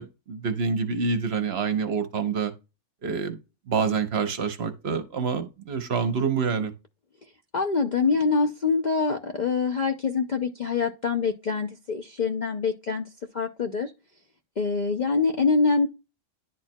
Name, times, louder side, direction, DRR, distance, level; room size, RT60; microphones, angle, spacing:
voice 1, 0.0-2.5 3.0-3.4 3.7-6.7, right 5 dB, 55° right, 1.0 m, -27 dB
voice 2, 7.5-13.0 13.3-13.9 14.6-15.9, left 4 dB, 55° left, 0.5 m, -25 dB
10.5 x 4.5 x 2.2 m
omnidirectional pair, 1.3 m